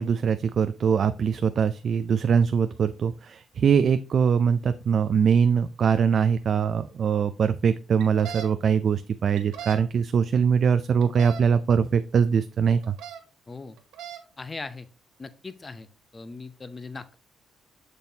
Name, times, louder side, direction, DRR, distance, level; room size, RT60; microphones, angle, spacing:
voice 1, 0.0-13.0, right 7 dB, 55° right, 11 dB, 0.4 m, -22 dB
sound 1, 8.0-8.5 9.4-9.8 11.0-11.4 12.8-13.2 13.8-14.2, right 9 dB, 85° right, 1.1 m, -38 dB
voice 2, 13.5-13.8 14.4-14.9 15.2-15.9 16.1-17.1, left 3 dB, 25° left, 13 dB, 0.7 m, -39 dB
6.9 x 6.1 x 2.8 m, 0.35 s
cardioid pair, 90°, 0 cm